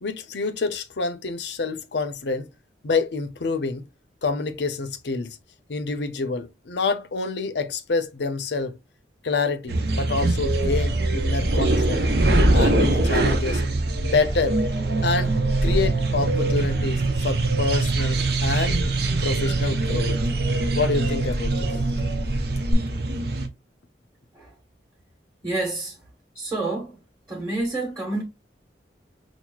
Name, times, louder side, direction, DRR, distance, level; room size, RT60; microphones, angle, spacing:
voice 1, 0.0-2.5 2.8-3.9 4.2-5.4 5.7-8.8 9.2-12.1 12.5-13.6 14.0-14.6 15.0-15.3 15.6-18.8 19.2-20.2 20.8-21.8, left 4 dB, 70° left, 0.6 m, -27 dB
sound 1, 9.7-23.5, right 2 dB, 60° right, 0.7 m, -23 dB
sound 2, 10.4-22.7, equal, 75° right, 1.1 m, -30 dB
voice 2, 25.4-26.0 26.3-27.0 27.3-28.2, right 2 dB, 10° right, 1.3 m, -28 dB
6.0 x 2.1 x 2.3 m
head